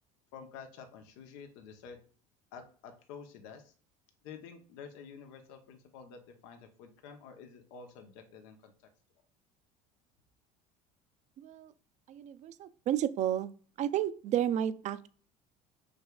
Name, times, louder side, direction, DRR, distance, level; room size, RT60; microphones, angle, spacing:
voice 1, 0.3-2.0 2.5-3.7 4.2-8.7, left 6 dB, 80° left, 6 dB, 0.9 m, -49 dB
voice 2, 11.4-11.7 12.1-13.5 13.8-15.1, right 10 dB, 45° right, 13 dB, 0.4 m, -32 dB
6.4 x 3.4 x 2.3 m, 0.42 s
supercardioid pair, 110°, 16 cm